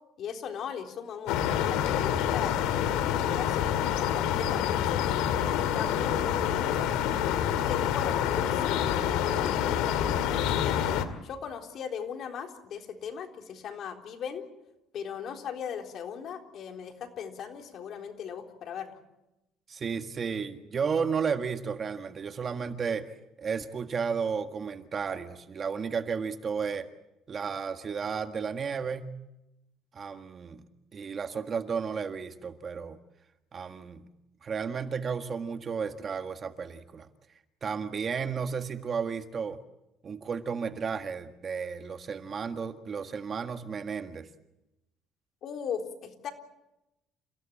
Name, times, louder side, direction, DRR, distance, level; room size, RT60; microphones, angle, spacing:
voice 1, 0.2-5.1 5.6-6.9 7.2-10.9 11.2-14.4 14.9-19.0 45.4-46.3, left 7 dB, 55° left, 4 dB, 3.8 m, -38 dB
sound 1, 1.3-11.1, left 9 dB, 90° left, 2.1 m, -27 dB
voice 2, 19.7-23.1 23.4-26.9 27.3-29.1 29.9-30.6 30.9-33.0 33.5-34.1 34.4-37.1 37.6-39.6 40.0-44.3, right 6 dB, 35° right, 8 dB, 1.7 m, -33 dB
29.5 x 16.5 x 8.7 m, 0.91 s
cardioid pair, 125°, 0 cm